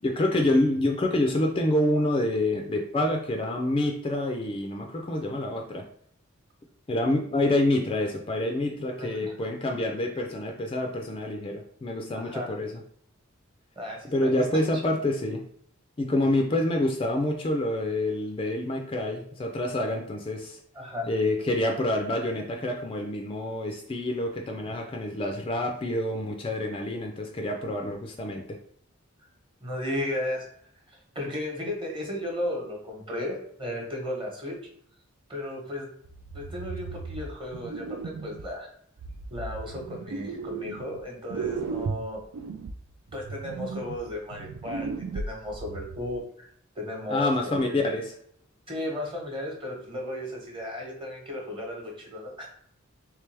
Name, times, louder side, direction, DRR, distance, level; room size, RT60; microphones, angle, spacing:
voice 1, 0.0-5.9 6.9-12.7 14.1-15.4 16.0-20.6 21.1-28.6 47.1-48.1, left 1 dB, 25° left, 3 dB, 0.4 m, -27 dB
voice 2, 8.8-9.3 12.1-12.5 13.8-14.6 20.7-21.1 29.6-30.4 30.9-34.6 35.3-35.9 36.3-38.7 39.3-42.2 43.1-46.5 46.7-47.7 48.7-52.5, left 1 dB, 25° right, 0 dB, 1.0 m, -35 dB
sound 1, 36.0-38.5 39.0-41.0 41.3-46.1, right 4 dB, 90° right, 0.4 m, -36 dB
3.3 x 3.2 x 3.3 m, 0.64 s
head